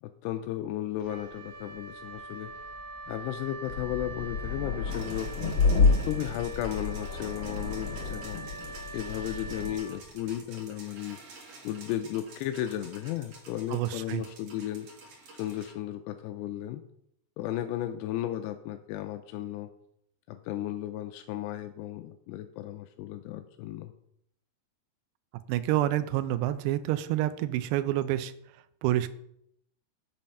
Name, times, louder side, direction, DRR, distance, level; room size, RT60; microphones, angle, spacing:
voice 1, 0.0-2.5 3.1-5.3 5.9-8.4 8.9-11.2 11.6-14.9 15.3-16.8 17.4-19.7 20.3-23.9, left 12 dB, 85° left, 8 dB, 2.7 m, -35 dB
Wind instrument woodwind instrument, 1.0-10.5, right 2 dB, 70° right, 1.8 m, -44 dB
sound 1, 3.7-9.8, left 4 dB, 35° left, 3.0 m, -29 dB
sound 2, 4.9-15.7, right 3 dB, 50° right, 2.0 m, -50 dB
voice 2, 13.7-14.2 25.5-28.3 28.8-29.1, right 14 dB, 85° right, 13 dB, 2.7 m, -28 dB
7.5 x 7.1 x 5.4 m, 0.72 s
omnidirectional pair, 4.8 m